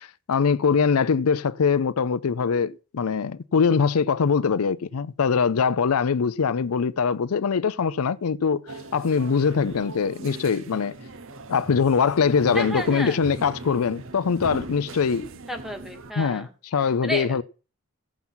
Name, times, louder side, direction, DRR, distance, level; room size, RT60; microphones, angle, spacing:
voice 1, 0.0-8.6 8.9-11.0 11.5-15.3 16.2-17.4, left 6 dB, 75° left, 0.5 m, -22 dB
sound 1, 8.7-16.1, right 2 dB, 60° right, 1.0 m, -39 dB
voice 2, 12.5-13.2 15.5-16.5 16.8-17.4, equal, ahead, 1.8 m, -32 dB
15.5 x 6.0 x 5.6 m
head